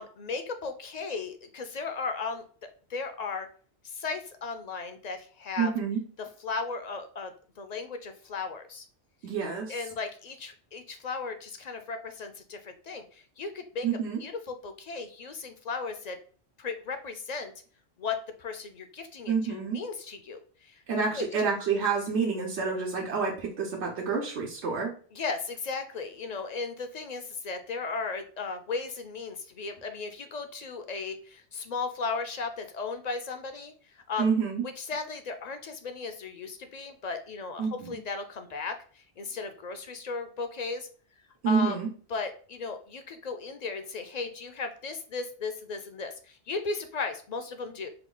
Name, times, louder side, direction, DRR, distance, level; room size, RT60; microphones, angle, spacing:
voice 1, 0.0-2.4 2.9-3.5 3.8-5.7 6.4-7.3 7.6-8.9 9.7-13.9 14.2-16.2 16.6-17.5 18.0-20.8 21.2-21.3 25.1-34.3 34.8-40.9 41.5-41.8 42.1-47.9, left 4 dB, 55° left, 7 dB, 0.5 m, -36 dB
voice 2, 5.6-6.0 9.2-9.8 13.8-14.2 19.3-19.8 20.9-24.9 34.2-34.6 37.6-38.0 41.4-41.9, right 5 dB, 80° right, -2 dB, 1.1 m, -28 dB
4.3 x 2.3 x 3.7 m, 0.42 s
omnidirectional pair, 1.1 m